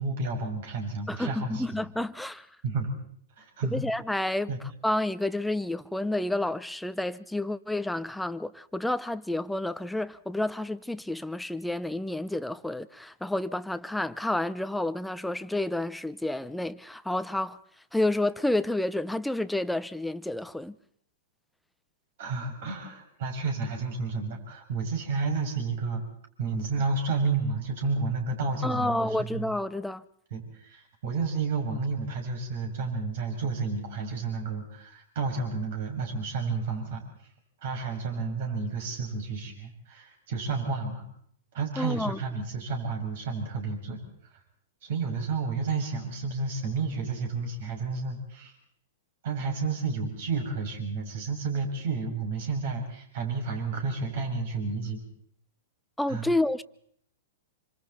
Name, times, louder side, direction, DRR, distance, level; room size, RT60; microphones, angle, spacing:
voice 1, 0.0-1.7 2.6-2.9 3.4-3.9 4.5-4.6 22.2-26.0 26.4-29.5 30.3-37.0 37.6-41.0 41.5-44.0 44.8-48.6 49.2-55.0 56.1-56.3, right 4 dB, 60° right, 6.5 m, -31 dB
voice 2, 1.1-2.5 3.7-4.5 4.8-17.6 17.9-20.7 28.6-30.0 41.8-42.2 56.0-56.6, left 1 dB, 5° left, 0.8 m, -30 dB
27.5 x 25.5 x 4.2 m
hypercardioid pair, 115°, 0 cm